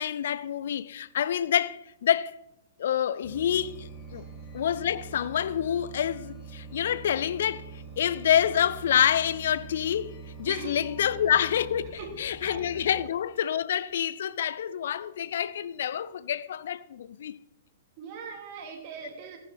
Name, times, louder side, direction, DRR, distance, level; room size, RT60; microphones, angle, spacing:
voice 1, 0.0-2.3 2.8-4.2 4.5-7.7 8.0-17.4, left 9 dB, 60° left, 0.5 m, -27 dB
sound 1, 3.2-13.0, right 5 dB, 30° left, 4.3 m, -44 dB
voice 2, 10.5-10.8 11.9-12.6 12.9-13.0 18.0-19.4, right 5 dB, 40° right, 2.7 m, -41 dB
14.5 x 10.0 x 3.4 m
figure-of-eight pair, 110°, 0 cm